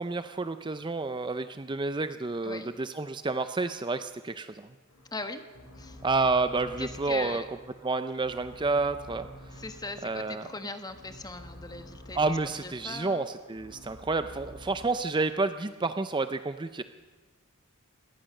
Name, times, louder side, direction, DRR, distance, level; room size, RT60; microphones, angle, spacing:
voice 1, 0.0-4.7 6.0-7.4 7.8-9.3 10.0-10.4 12.1-16.8, right 3 dB, 20° right, 10 dB, 0.5 m, -29 dB
sound 1, 4.9-14.9, equal, 85° left, 5.6 m, -49 dB
voice 2, 5.1-5.4 5.7-6.0 6.8-7.5 9.5-13.2, left 2 dB, 20° left, 8 dB, 1.4 m, -39 dB
22.5 x 18.0 x 6.5 m, 1.3 s
head